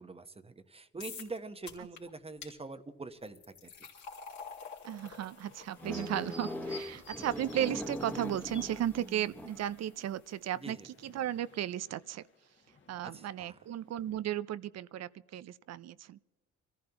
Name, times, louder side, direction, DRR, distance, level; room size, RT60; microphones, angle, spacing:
voice 1, 0.0-3.7 10.6-10.9 13.1-13.6, right 3 dB, 20° right, 1.0 m, -44 dB
sound 1, 1.0-1.4 1.7-2.0 2.4-2.5 3.2-10.3, left 5 dB, 70° left, 3.0 m, -51 dB
voice 2, 4.8-12.2 12.9-16.2, right 11 dB, 60° right, 0.5 m, -35 dB
sound 2, 4.9-8.7 10.4-14.2, left 5 dB, 40° left, 1.8 m, -55 dB
sound 3, 5.8-9.8, left 1 dB, 5° left, 1.4 m, -41 dB
25.0 x 14.5 x 2.9 m
cardioid pair, 90°, 30 cm